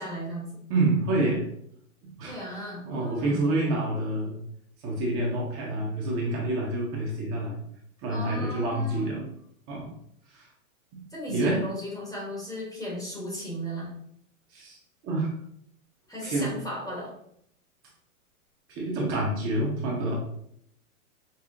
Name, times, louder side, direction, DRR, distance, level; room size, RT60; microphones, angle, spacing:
voice 1, 0.0-0.5 2.2-3.5 8.1-9.1 11.1-13.9 16.1-17.1, equal, 10° left, -4 dB, 0.9 m, -35 dB
voice 2, 0.7-1.5 2.0-2.4 2.8-4.4 4.8-7.6 8.0-9.3 9.7-9.9 10.3-10.5 10.9-11.6 14.5-14.8 15.0-15.3 16.2-16.5 18.7-20.1, right 2 dB, 30° right, -2 dB, 0.8 m, -28 dB
5.5 x 2.0 x 2.5 m, 0.69 s
hypercardioid pair, 125°, 42 cm